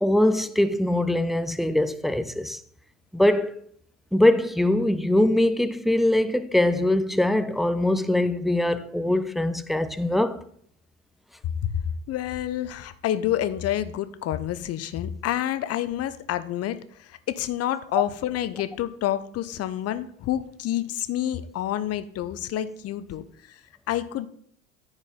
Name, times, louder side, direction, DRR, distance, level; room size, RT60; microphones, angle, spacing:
voice 1, 0.0-2.6 3.1-3.6 4.1-10.4, left 1 dB, ahead, 0.3 m, -22 dB
voice 2, 12.1-23.6 23.9-24.3, left 12 dB, 40° left, 0.8 m, -28 dB
14.0 x 4.8 x 3.8 m
figure-of-eight pair, 65°, 40 cm